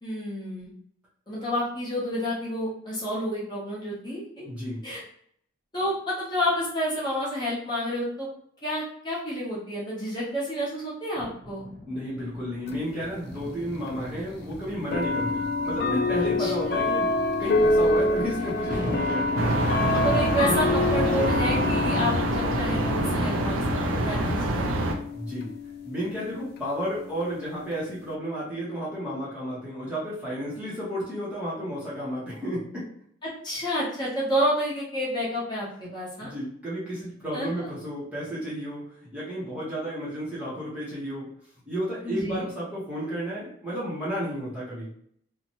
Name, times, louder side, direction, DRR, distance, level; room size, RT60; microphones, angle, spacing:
voice 1, 0.0-0.7 1.3-4.4 4.8-5.0 5.7-8.3 8.6-11.6 16.4-16.5 19.9-24.7 33.2-36.3 37.3-37.7 42.0-42.5, equal, 20° left, -7 dB, 0.8 m, -29 dB
voice 2, 4.4-4.8 11.9-17.1 17.4-19.3 25.1-25.5 25.8-32.9 35.8-35.9 36.2-41.3 41.7-44.9, equal, 5° right, -8 dB, 0.7 m, -32 dB
sound 1, 11.1-23.9 24.6-24.8, equal, 40° right, 0.7 m, -40 dB
sound 2, 12.7-12.8 13.9-14.0 14.9-28.1, left 2 dB, 50° left, 0.3 m, -27 dB
sound 3, 19.4-25.0, right 2 dB, 80° right, 0.4 m, -26 dB
2.6 x 2.1 x 2.9 m, 0.66 s
head